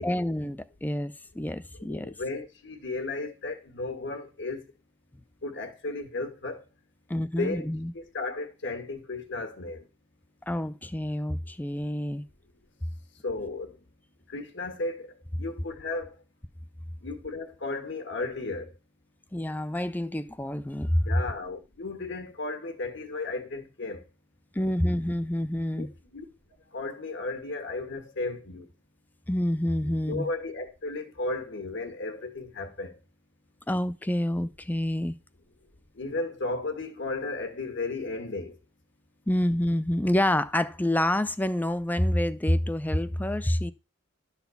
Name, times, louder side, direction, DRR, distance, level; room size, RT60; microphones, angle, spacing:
voice 1, 0.0-2.1 7.1-7.9 10.5-12.2 19.3-21.0 24.6-25.9 29.3-30.3 33.7-35.2 39.3-43.7, left 1 dB, 10° left, 0.5 m, -27 dB
voice 2, 1.9-4.6 5.4-6.6 7.2-7.7 7.9-9.9 13.2-13.8 14.3-16.1 17.0-18.7 20.8-24.0 25.7-26.3 26.7-28.7 29.8-33.0 35.9-38.6, left 3 dB, 60° left, 1.7 m, -34 dB
12.0 x 4.1 x 7.0 m
head